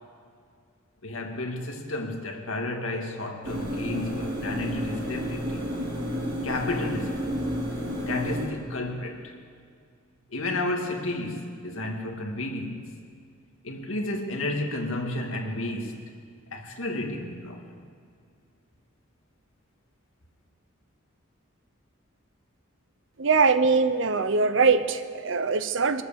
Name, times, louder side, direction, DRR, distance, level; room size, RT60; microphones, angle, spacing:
voice 1, 1.0-5.6 6.4-7.3 8.1-9.4 10.3-12.9 13.6-16.0 16.5-17.7, left 2 dB, 85° left, 2 dB, 1.9 m, -32 dB
sound 1, 3.4-8.5, equal, 40° right, 3.1 m, -31 dB
voice 2, 23.2-26.0, right 4 dB, 65° right, 12 dB, 0.7 m, -22 dB
23.0 x 8.2 x 7.0 m, 2.2 s
head